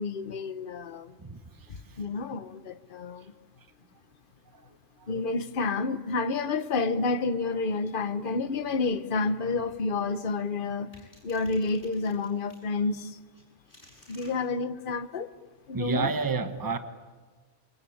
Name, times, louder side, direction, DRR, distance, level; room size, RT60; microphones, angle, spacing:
voice 1, 0.0-1.1 1.7-3.3 5.1-10.9 11.2-13.2 14.1-15.3 15.7-16.1, left 3 dB, 45° left, 1.2 m, -29 dB
sound 1, 10.9-12.7 13.3-14.3, left 1 dB, 30° left, 7.9 m, -54 dB
voice 2, 15.7-16.8, right 4 dB, 15° right, 1.2 m, -30 dB
28.5 x 24.0 x 8.7 m
omnidirectional pair, 1.3 m